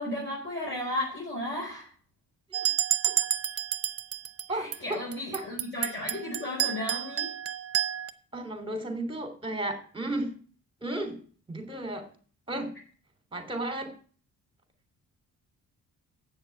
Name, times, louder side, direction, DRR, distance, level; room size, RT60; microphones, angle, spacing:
voice 1, 0.0-1.9 4.5-7.3, left 1 dB, 35° left, -4 dB, 5.0 m, -34 dB
sound 1, 2.5-4.4 4.7-8.1, right 9 dB, 45° right, 0.8 m, -29 dB
voice 2, 4.5-5.0 5.3-5.5 8.3-10.3 10.8-11.2 11.5-12.1 12.5-12.8 13.3-13.9, right 1 dB, 15° right, 6 dB, 3.1 m, -34 dB
8.4 x 6.5 x 8.4 m, 0.44 s
cardioid pair, 85°, 34 cm